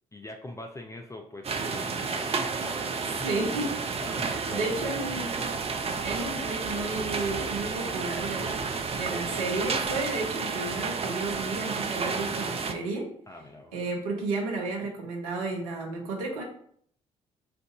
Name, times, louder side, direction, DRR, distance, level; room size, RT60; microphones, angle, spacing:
voice 1, 0.1-3.6 4.0-5.1 8.6-9.0 13.3-13.7, left 2 dB, 15° left, 2 dB, 0.6 m, -43 dB
sound 1, 1.4-12.7, right 5 dB, 35° right, 0.6 m, -31 dB
voice 2, 3.2-3.7 4.2-5.5 6.0-13.1 13.7-16.4, right 3 dB, 75° right, 0 dB, 0.8 m, -32 dB
4.6 x 2.6 x 3.6 m, 0.62 s
figure-of-eight pair, 45°, 18 cm